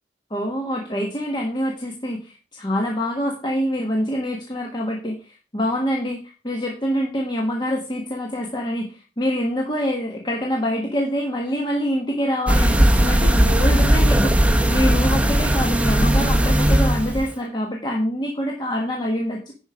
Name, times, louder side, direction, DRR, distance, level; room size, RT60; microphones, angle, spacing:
voice 1, 0.3-6.2 6.4-19.5, equal, 25° left, 0 dB, 1.4 m, -25 dB
sound 1, 12.5-17.3, right 1 dB, 5° right, 0.9 m, -17 dB
10.5 x 5.1 x 4.8 m, 0.34 s
head